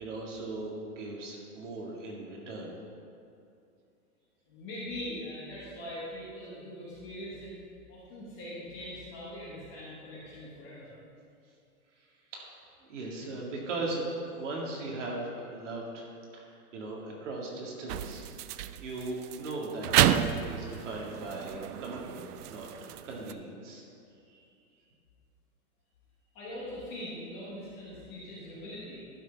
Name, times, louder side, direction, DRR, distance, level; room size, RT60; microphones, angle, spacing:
voice 1, 0.0-2.7 12.3-16.1 16.3-23.8 24.3-24.4, right 2 dB, 50° right, -2 dB, 2.2 m, -38 dB
voice 2, 4.5-7.5 7.9-10.9 26.3-29.0, left 1 dB, 15° left, -7 dB, 1.0 m, -42 dB
sound 1, 17.9-23.3, right 11 dB, 90° right, 0.6 m, -31 dB
11.5 x 6.1 x 4.8 m, 2.6 s
hypercardioid pair, 180°, 45 cm